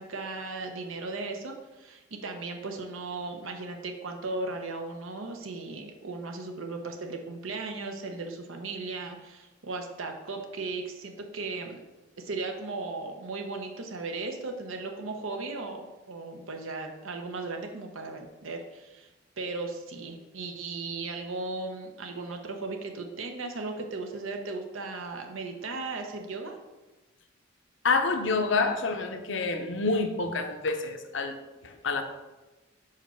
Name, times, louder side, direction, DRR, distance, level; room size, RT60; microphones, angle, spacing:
voice 1, 0.0-11.8 12.2-19.1 19.4-26.6, right 3 dB, 90° right, 3 dB, 0.8 m, -36 dB
voice 2, 27.8-31.3 31.6-32.0, left 3 dB, 65° left, 6 dB, 0.7 m, -27 dB
4.9 x 4.3 x 5.7 m, 1.1 s
head